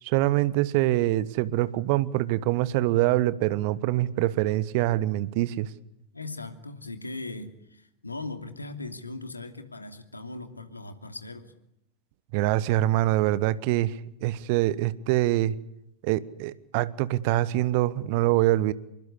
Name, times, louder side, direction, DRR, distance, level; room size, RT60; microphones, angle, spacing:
voice 1, 0.0-5.7 12.3-15.5 16.0-18.7, right 15 dB, 45° right, 1.2 m, -24 dB
voice 2, 6.1-11.5, left 2 dB, 80° left, 2.8 m, -39 dB
27.0 x 23.5 x 8.4 m
figure-of-eight pair, 90°, 0 cm